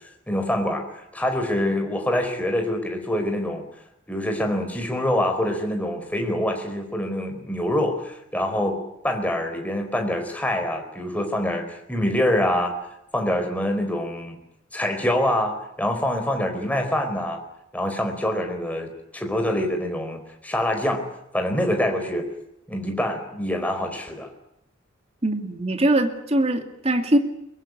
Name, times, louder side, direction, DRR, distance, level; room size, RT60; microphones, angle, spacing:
voice 1, 0.3-0.9 1.1-3.6 4.1-8.8 9.0-12.8 13.1-14.4 14.7-17.4 17.7-21.0 21.3-22.3 22.7-24.3, left 1 dB, 5° left, 4 dB, 4.5 m, -25 dB
voice 2, 25.2-27.2, right 1 dB, 30° right, 5 dB, 2.5 m, -22 dB
23.0 x 22.0 x 9.6 m, 0.78 s
head